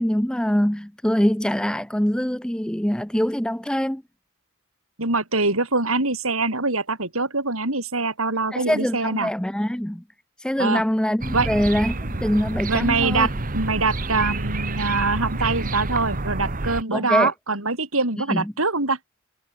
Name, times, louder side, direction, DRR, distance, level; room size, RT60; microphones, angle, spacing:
voice 1, 0.0-4.0 8.5-10.0 10.4-13.3 16.9-17.3 18.3-18.4, equal, 5° left, 0.7 m, -23 dB
voice 2, 5.0-9.3 10.6-10.8 11.3-11.5 12.7-19.0, right 3 dB, 80° right, 6.6 m, -24 dB
sound 1, 11.2-16.8, right 2 dB, 40° right, 1.6 m, -28 dB
head